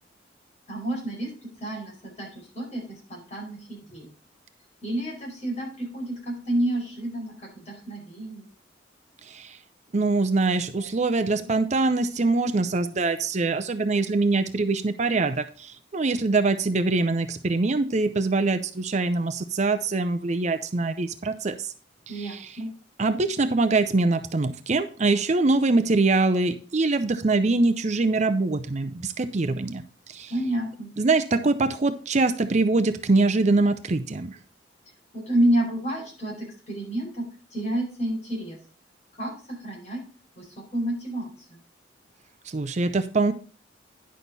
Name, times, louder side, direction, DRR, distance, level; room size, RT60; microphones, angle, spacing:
voice 1, 0.7-4.1 4.8-8.5 10.8-10.9 11.3-11.5 22.1-22.7 30.3-30.9 35.1-38.6 39.2-40.0 40.4-41.6, right 1 dB, 40° left, -2 dB, 4.9 m, -30 dB
voice 2, 9.2-9.6 9.9-21.7 22.1-22.6 23.0-29.8 30.1-30.3 31.0-34.4 42.5-43.3, right 3 dB, 40° right, 8 dB, 0.6 m, -23 dB
10.5 x 6.5 x 4.0 m, 0.38 s
head